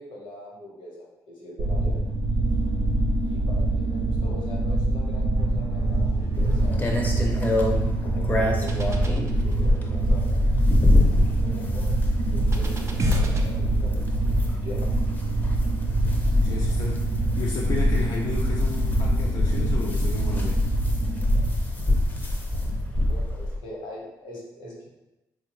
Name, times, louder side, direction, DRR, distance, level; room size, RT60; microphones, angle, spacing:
voice 1, 0.0-2.0 3.2-10.4 11.2-12.0 12.2-14.2 14.5-14.9 23.1-24.9, left 1 dB, 90° left, -3 dB, 1.1 m, -42 dB
sound 1, 1.6-21.5, right 2 dB, 85° right, 0.5 m, -26 dB
sound 2, 5.3-13.4, right 2 dB, 35° right, 0.4 m, -31 dB
sound 3, 6.3-23.6, left 1 dB, 20° left, 0.6 m, -25 dB
voice 2, 16.4-17.1 17.3-20.6, left 4 dB, 65° left, -3 dB, 0.4 m, -32 dB
3.6 x 2.2 x 3.0 m, 0.97 s
cardioid pair, 100°, 8 cm